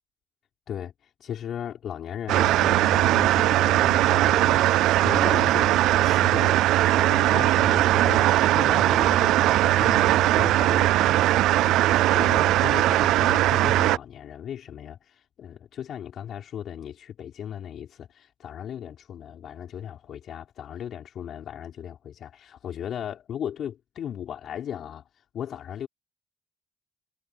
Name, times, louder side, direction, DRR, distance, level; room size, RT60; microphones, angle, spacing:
voice 1, 0.7-25.1 25.3-25.9, left 9 dB, 65° left, 5.0 m, -37 dB
sound 1, 2.3-14.0, right 15 dB, 90° right, 0.3 m, -20 dB
cardioid pair, 90°, 0 cm